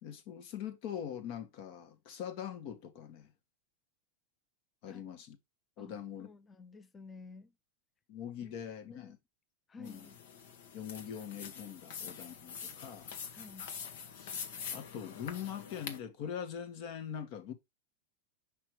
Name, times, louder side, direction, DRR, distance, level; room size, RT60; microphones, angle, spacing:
voice 1, 0.0-3.3 4.8-5.4 5.8-6.3 8.1-9.2 9.8-10.1 10.7-13.1 14.1-14.4 14.7-17.5, left 8 dB, 55° left, 1.7 m, -42 dB
voice 2, 4.9-5.2 5.8-7.5 8.4-8.5 8.9-9.1 9.7-10.2 13.3-13.7, left 3 dB, 20° left, 0.7 m, -52 dB
sound 1, 9.9-16.0, left 7 dB, 75° left, 1.6 m, -45 dB
5.9 x 5.5 x 3.3 m
supercardioid pair, 130°, 0 cm